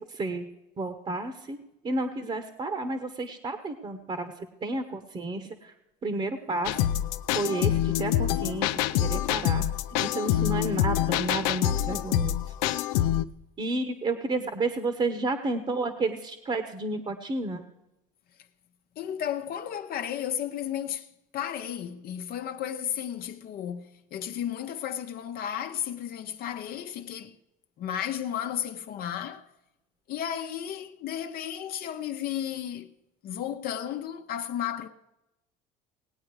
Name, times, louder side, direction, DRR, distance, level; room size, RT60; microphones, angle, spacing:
voice 1, 0.1-0.5 0.8-1.6 1.8-5.7 6.0-6.9 7.3-9.6 10.0-12.3 13.6-17.6, right 2 dB, 30° right, 1.2 m, -31 dB
sound 1, 6.7-13.3, left 12 dB, 85° left, 0.6 m, -26 dB
voice 2, 19.0-21.1 21.3-27.4 27.8-29.4 30.1-32.9 33.2-34.9, left 10 dB, 55° left, 1.0 m, -33 dB
19.0 x 8.7 x 4.8 m
supercardioid pair, 110°, 19 cm